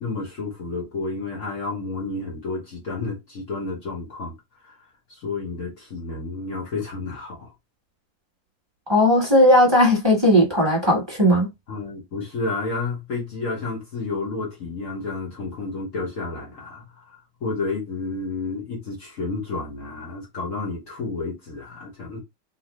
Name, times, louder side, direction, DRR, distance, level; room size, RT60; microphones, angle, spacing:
voice 1, 0.0-4.3 4.6-4.8 5.1-7.5 11.7-22.2, left 3 dB, 50° left, 1.1 m, -31 dB
voice 2, 8.9-11.5, left 1 dB, 15° right, 1.3 m, -17 dB
3.1 x 2.4 x 3.0 m
omnidirectional pair, 2.1 m